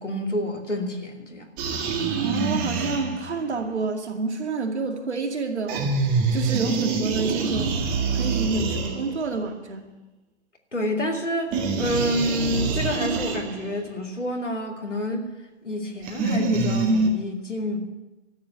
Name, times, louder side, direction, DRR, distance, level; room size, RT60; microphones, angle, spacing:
voice 1, 0.0-1.5 10.7-15.3 15.6-17.8, left 1 dB, 90° left, 2.7 m, -28 dB
sound 1, 1.6-3.5 5.7-9.4 11.5-13.8 16.0-17.1, right 4 dB, 25° right, 1.8 m, -25 dB
voice 2, 2.2-5.9 6.3-9.9, right 4 dB, 70° right, 2.3 m, -28 dB
13.0 x 8.7 x 9.4 m
figure-of-eight pair, 125°, 35 cm